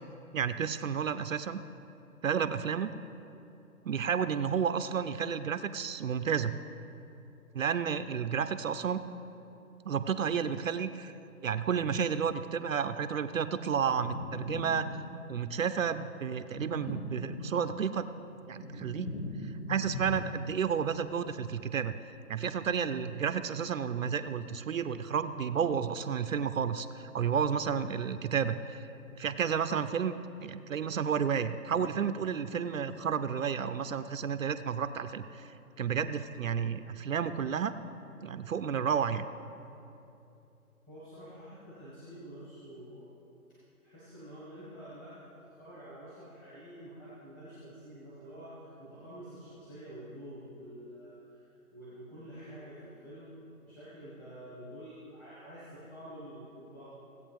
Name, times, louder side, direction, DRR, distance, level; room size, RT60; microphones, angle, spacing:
voice 1, 0.3-1.6 2.2-2.9 3.8-6.6 7.5-9.0 9.9-11.1 11.4-14.9 15.3-18.1 18.5-19.1 19.4-21.9 22.3-28.9 29.2-30.2 30.4-35.5 35.8-37.7 38.2-39.2, right 7 dB, 60° right, 11 dB, 0.6 m, -31 dB
sound 1, 13.9-15.5 16.5-17.9 18.3-20.7, left 1 dB, 60° left, 1.3 m, -40 dB
voice 2, 40.9-43.1 43.8-45.2 45.6-56.8, equal, 15° left, -11 dB, 1.4 m, -48 dB
17.0 x 8.2 x 3.5 m, 2.8 s
hypercardioid pair, 165°, 45 cm